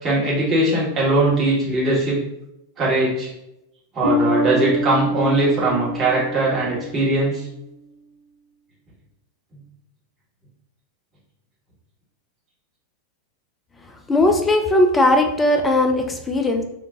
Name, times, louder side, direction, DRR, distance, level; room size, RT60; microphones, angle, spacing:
voice 1, 0.0-2.2 2.8-3.3 3.9-7.5, right 2 dB, 25° right, -6 dB, 1.3 m, -20 dB
sound 1, 4.0-7.4, equal, 30° left, 1.2 m, -25 dB
voice 2, 14.1-16.6, left 1 dB, 15° left, 5 dB, 0.4 m, -18 dB
3.5 x 2.6 x 2.7 m, 0.85 s
figure-of-eight pair, 90°, 0 cm